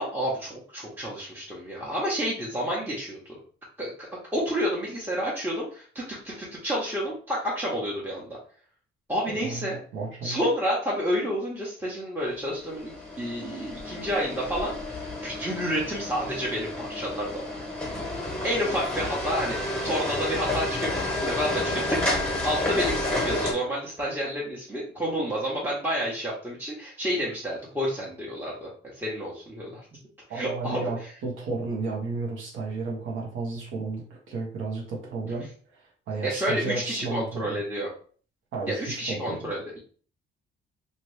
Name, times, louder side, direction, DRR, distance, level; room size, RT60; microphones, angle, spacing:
voice 1, 0.0-3.4 3.8-4.1 4.3-8.4 9.1-9.8 10.2-12.9 13.2-17.4 18.4-22.1 22.4-29.9 30.3-30.9 36.2-37.9 38.7-39.8, equal, 10° right, -6 dB, 1.0 m, -30 dB
voice 2, 9.4-10.4 30.3-35.5 36.1-37.6 38.5-39.5, right 3 dB, 85° right, -1 dB, 1.1 m, -33 dB
sound 1, 12.4-23.5, left 1 dB, 5° left, 1.3 m, -30 dB
2.8 x 2.7 x 3.2 m, 0.43 s
cardioid pair, 90°, 20 cm